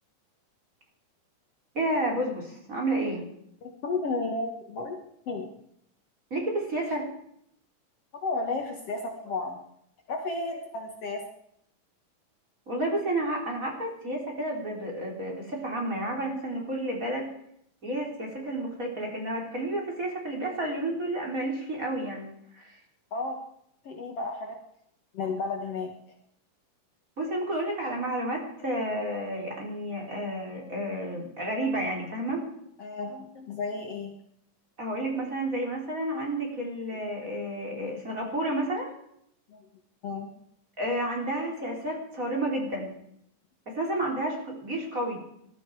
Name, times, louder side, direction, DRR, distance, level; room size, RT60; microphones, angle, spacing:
voice 1, 1.7-3.2 6.3-7.1 12.7-17.3 17.8-22.3 22.5-22.8 27.2-32.4 34.8-38.9 40.8-42.9 43.7-45.2, right 1 dB, 25° right, -1 dB, 4.1 m, -31 dB
voice 2, 3.6-5.0 5.3-5.5 8.2-9.6 10.1-11.2 23.1-23.4 23.8-24.6 25.1-25.9 32.8-34.1 36.9-37.0 39.5-39.6 40.0-40.3, left 3 dB, 55° left, 2 dB, 2.4 m, -32 dB
20.5 x 13.0 x 4.9 m, 0.71 s
omnidirectional pair, 3.7 m